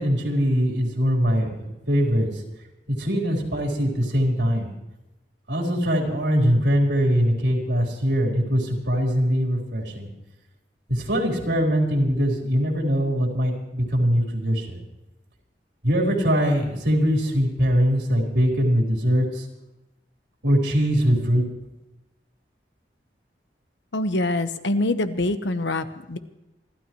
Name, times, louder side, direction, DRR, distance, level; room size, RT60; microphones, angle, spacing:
voice 1, 0.0-2.3 3.0-4.7 5.5-10.1 10.9-14.8 15.8-19.4 20.4-21.4, equal, 80° right, 0 dB, 4.1 m, -22 dB
voice 2, 23.9-26.2, left 2 dB, 90° left, 10 dB, 1.1 m, -25 dB
28.0 x 12.5 x 3.1 m, 0.97 s
head